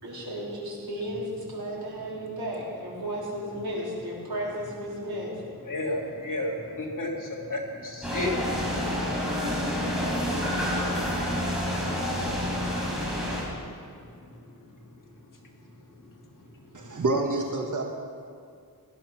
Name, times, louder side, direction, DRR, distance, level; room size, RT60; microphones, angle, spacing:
voice 1, 0.0-5.4, equal, 75° right, -5 dB, 4.1 m, -34 dB
voice 2, 5.6-8.8 14.3-15.0 15.9-16.1 16.6-17.0, left 1 dB, 55° left, -1 dB, 2.7 m, -36 dB
sound 1, 8.0-13.4, equal, ahead, 5.0 m, -28 dB
voice 3, 16.7-17.8, right 2 dB, 55° right, 2 dB, 1.5 m, -27 dB
17.0 x 12.5 x 6.0 m, 2.3 s
wide cardioid pair, 120°, 37 cm